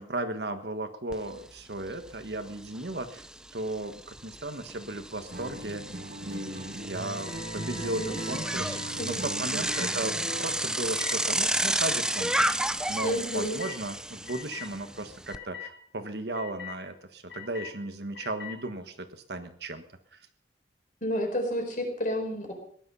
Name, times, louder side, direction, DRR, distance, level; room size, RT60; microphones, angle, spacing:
voice 1, 0.0-3.3 3.5-5.9 6.2-19.8 20.1-20.3, right 2 dB, 70° right, 8 dB, 1.4 m, -36 dB
Bicycle, 1.1-1.2 1.6-15.4, right 1 dB, 5° right, 0.5 m, -32 dB
Acoustic guitar, 5.3-10.7, right 1 dB, 55° right, 1.5 m, -39 dB
sound 1, 7.1-8.9 9.7-9.9 11.0-11.2 12.3-12.5 13.6-13.8 14.3-14.7 15.3-15.7 16.3-16.8 17.3-17.7 18.1-18.6, left 9 dB, 85° left, 2.9 m, -43 dB
voice 2, 7.8-8.2 9.0-9.6 13.0-13.6 21.0-22.5, equal, 45° left, 3 dB, 4.5 m, -31 dB
17.5 x 11.0 x 5.6 m, 0.62 s
head